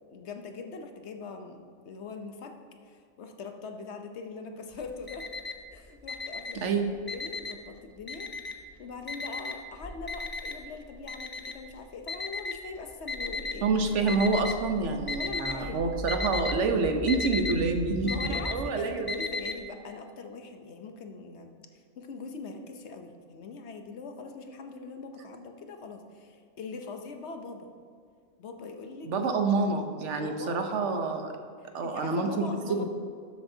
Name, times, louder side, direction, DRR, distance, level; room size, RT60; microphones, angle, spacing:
voice 1, 0.1-2.6 2.8-5.3 5.7-6.7 7.0-8.3 8.8-13.7 14.0-14.1 15.2-15.8 18.0-27.7 28.4-29.3 29.6-29.7 30.1-30.6 31.8-32.8, left 4 dB, 65° left, 5 dB, 1.0 m, -42 dB
Alarm, 4.7-5.7 6.0-7.7 8.1-8.7 9.1-13.6 14.1-14.7 15.0-15.6 15.9-19.6, left 4 dB, 30° left, 0.4 m, -35 dB
voice 2, 6.5-6.9 13.6-19.2 29.0-31.4 31.7-32.9, right 3 dB, 70° right, 5 dB, 1.1 m, -27 dB
sound 1, 13.1-18.6, right 1 dB, 10° left, 0.9 m, -40 dB
12.5 x 7.7 x 2.7 m, 2.2 s
omnidirectional pair, 1.3 m